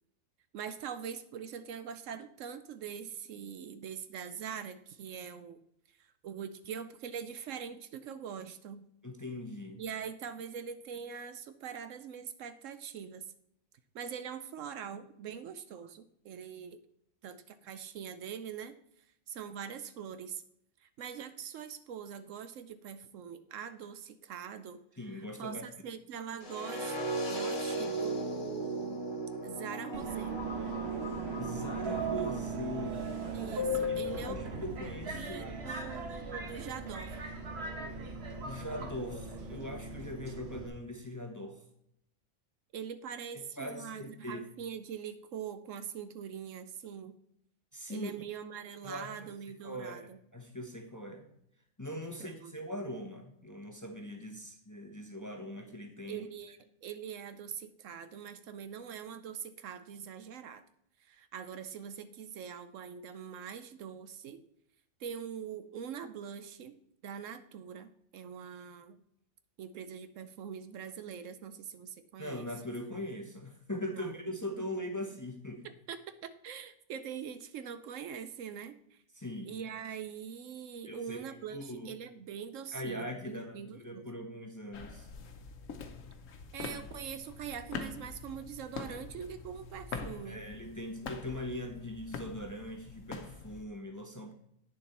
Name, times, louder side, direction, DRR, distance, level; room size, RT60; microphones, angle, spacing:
voice 1, 0.5-5.6 6.0-8.8 9.8-13.2 13.9-16.8 17.2-18.8 19.3-20.4 20.8-24.8 25.1-27.0 27.3-29.0 29.4-30.4 33.3-34.6 35.1-37.2 42.7-47.2 47.9-50.2 52.2-52.5 56.1-60.6 61.0-64.4 65.0-66.8 67.0-69.0 69.6-72.5 73.9-74.1 75.6-79.0 79.4-84.1 86.5-90.4, right 8 dB, 70° right, 11 dB, 0.9 m, -43 dB
voice 2, 9.0-9.8 25.0-25.7 31.1-33.1 33.9-35.8 38.4-41.6 43.3-44.5 47.7-48.1 48.8-49.3 49.6-51.3 51.8-56.3 72.2-75.7 79.2-79.5 80.9-82.0 82.7-85.1 90.2-94.3, left 1 dB, 15° left, 4 dB, 0.8 m, -41 dB
sound 1, 26.4-32.4, right 2 dB, 45° left, 1.7 m, -37 dB
Subway metro underground, 29.9-40.7, right 2 dB, 50° right, 1.4 m, -38 dB
sound 2, 84.7-93.7, left 5 dB, 70° left, 1.2 m, -44 dB
9.2 x 6.9 x 4.2 m, 0.74 s
omnidirectional pair, 1.4 m